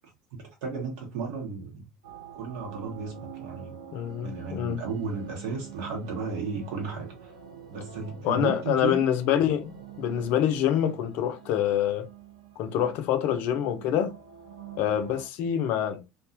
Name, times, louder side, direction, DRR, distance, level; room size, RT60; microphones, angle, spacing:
voice 1, 0.6-1.9 2.3-3.8 4.2-7.3 7.7-9.0, right 4 dB, 65° right, 1.1 m, -34 dB
sound 1, 2.0-15.3, right 9 dB, 85° right, 0.5 m, -46 dB
voice 2, 3.9-4.8 8.2-12.1 12.6-14.1 14.8-16.0, left 10 dB, 60° left, 0.5 m, -26 dB
2.4 x 2.3 x 2.5 m
hypercardioid pair, 70°, 3 cm